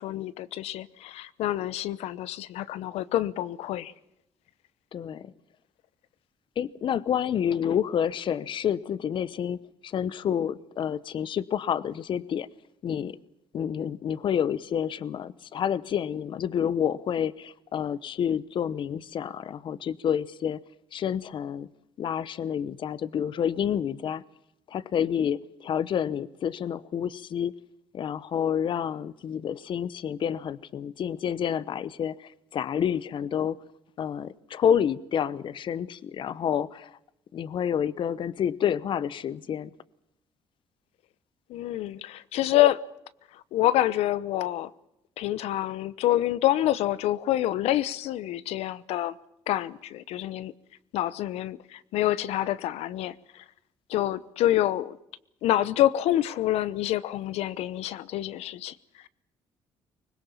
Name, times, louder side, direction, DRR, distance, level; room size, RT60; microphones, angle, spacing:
voice 1, 0.0-3.9 41.5-42.8 43.3-44.7 45.2-49.1 49.5-50.5 50.9-53.1 53.9-55.0 55.4-58.7, left 14 dB, 85° left, 1.0 m, -27 dB
voice 2, 4.9-5.3 6.6-12.5 12.8-13.2 13.5-20.6 20.9-21.7 22.0-24.2 24.7-27.5 27.9-33.6 34.0-36.9 37.3-39.7, left 8 dB, 50° left, 0.9 m, -29 dB
24.5 x 21.0 x 7.2 m
cardioid pair, 110°, 10 cm